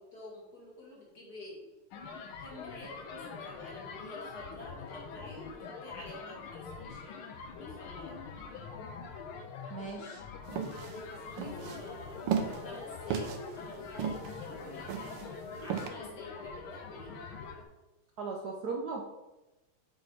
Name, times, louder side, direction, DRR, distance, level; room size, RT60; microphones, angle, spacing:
voice 1, 0.0-1.7 2.4-7.2 7.6-8.2 10.9-17.2, left 2 dB, 45° left, -4 dB, 2.6 m, -48 dB
sound 1, 1.9-17.6, left 5 dB, 75° left, 1.6 m, -44 dB
voice 2, 9.7-10.2 18.2-19.0, right 4 dB, 60° right, 0 dB, 1.1 m, -37 dB
sound 2, 10.5-15.9, right 7 dB, 80° right, 1.7 m, -35 dB
7.9 x 5.0 x 3.9 m, 1.0 s
omnidirectional pair, 2.4 m